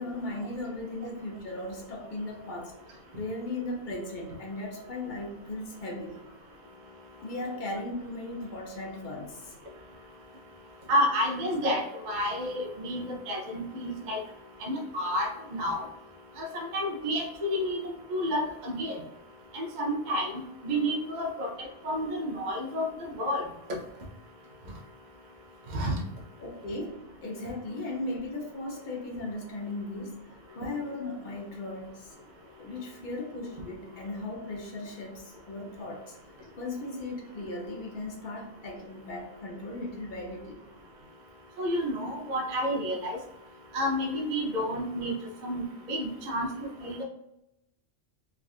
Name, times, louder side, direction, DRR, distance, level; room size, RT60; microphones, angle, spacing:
voice 1, 0.0-6.2 7.2-9.5 26.4-30.2 30.5-32.1 32.6-36.2 36.6-40.7, left 2 dB, 50° left, 0 dB, 0.8 m, -37 dB
voice 2, 10.9-14.2 14.6-15.8 16.4-19.0 19.5-20.3 20.6-21.5 21.8-23.5 25.7-26.0 41.6-43.2 43.7-45.1 45.4-46.5 46.8-47.0, equal, 50° right, 0 dB, 0.6 m, -30 dB
3.5 x 2.4 x 2.4 m, 0.86 s
omnidirectional pair, 1.3 m